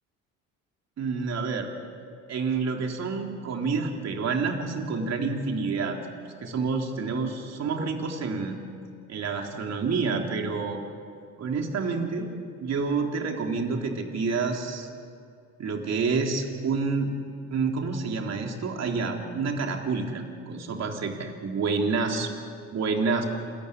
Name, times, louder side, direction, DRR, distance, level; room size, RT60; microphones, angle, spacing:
voice 1, 1.0-1.7 2.3-6.0 6.4-8.6 9.1-10.8 11.4-12.3 12.6-14.9 15.6-17.1 17.5-22.3 22.7-23.3, right 4 dB, 50° right, 2 dB, 3.5 m, -28 dB
27.5 x 14.0 x 9.9 m, 2.3 s
cardioid pair, 105°, 34 cm